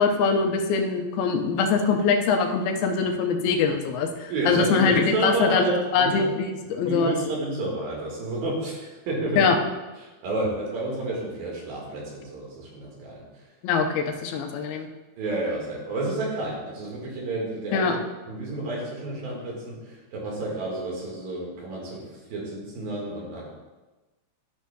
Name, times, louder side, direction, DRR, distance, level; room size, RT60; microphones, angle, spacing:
voice 1, 0.0-7.1 9.4-9.6 13.6-14.9 17.7-18.0, left 5 dB, 80° left, 4 dB, 2.5 m, -23 dB
voice 2, 4.3-6.3 6.8-9.5 10.2-13.2 15.2-17.9 18.3-19.7 20.1-22.0 22.3-23.5, right 2 dB, 70° right, -3 dB, 3.4 m, -30 dB
12.5 x 6.2 x 2.2 m, 1.2 s
omnidirectional pair, 4.3 m